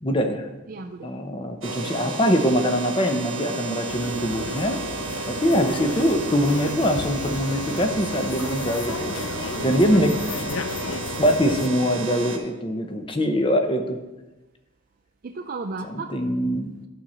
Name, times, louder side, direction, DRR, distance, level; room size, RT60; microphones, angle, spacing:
voice 1, 0.0-0.5 1.0-4.8 5.2-9.2 9.6-10.1 11.2-14.0 15.9-16.7, equal, 25° left, 0.7 m, -23 dB
voice 2, 0.7-1.1 9.5-10.4 15.2-16.1, right 3 dB, 45° right, 0.4 m, -35 dB
sound 1, 1.6-12.4, right 3 dB, 75° right, 1.2 m, -32 dB
sound 2, 3.9-11.7, left 5 dB, 65° left, 0.5 m, -34 dB
11.5 x 4.3 x 6.2 m
head